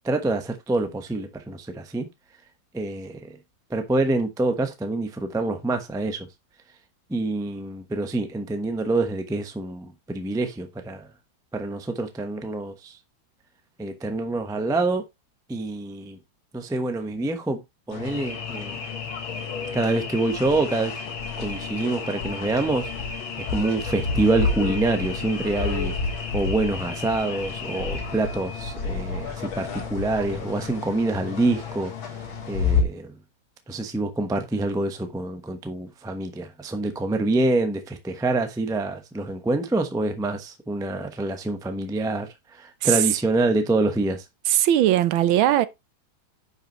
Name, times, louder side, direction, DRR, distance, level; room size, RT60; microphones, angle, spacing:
voice 1, 0.0-2.1 2.7-3.4 3.7-6.3 7.1-11.1 11.5-13.0 13.8-15.0 15.5-16.2 16.5-17.6 17.9-18.8 19.7-20.9 21.4-22.9 23.5-26.0 26.3-31.9 32.5-33.2 33.7-44.2, right 2 dB, 5° right, 0.4 m, -26 dB
sound 1, 17.9-32.8, left 5 dB, 75° left, 2.4 m, -30 dB
voice 2, 44.5-45.7, right 12 dB, 80° right, 1.5 m, -19 dB
9.8 x 5.5 x 3.0 m
omnidirectional pair, 2.2 m